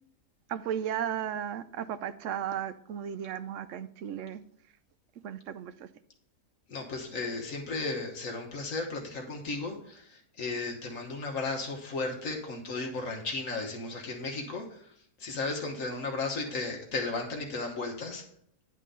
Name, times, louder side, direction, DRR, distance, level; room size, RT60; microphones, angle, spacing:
voice 1, 0.5-4.4 5.2-5.9, right 9 dB, 70° right, 13 dB, 0.8 m, -35 dB
voice 2, 6.7-18.2, left 3 dB, 60° left, 1 dB, 1.5 m, -35 dB
10.5 x 3.8 x 6.7 m, 0.68 s
omnidirectional pair, 1.6 m